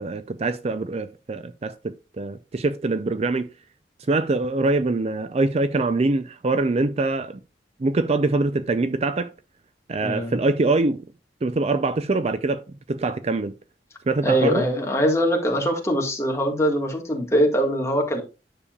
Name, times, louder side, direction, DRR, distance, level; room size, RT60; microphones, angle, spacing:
voice 1, 0.0-3.5 4.1-7.4 7.8-9.3 9.9-11.0 11.4-12.6 12.9-13.5 14.1-14.7, right 3 dB, 35° right, 0.4 m, -24 dB
voice 2, 10.0-10.4 14.2-18.2, equal, 15° left, 1.7 m, -22 dB
9.8 x 6.8 x 2.4 m
head